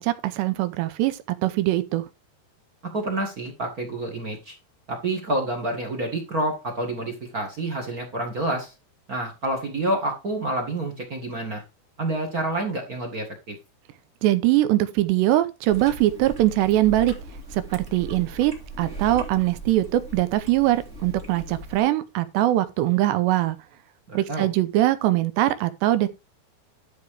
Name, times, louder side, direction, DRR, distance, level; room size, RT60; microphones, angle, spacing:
voice 1, 0.0-2.0 14.2-17.1 17.5-18.5 18.8-23.6 24.1-26.1, right 15 dB, 90° right, 3.0 m, -22 dB
voice 2, 2.9-4.5 4.9-8.7 9.1-11.6 12.0-13.5 24.1-24.5, right 1 dB, 55° right, 1.0 m, -28 dB
Chewing mastication, 15.7-21.8, right 1 dB, 20° right, 2.3 m, -39 dB
11.5 x 4.7 x 4.8 m
omnidirectional pair, 4.9 m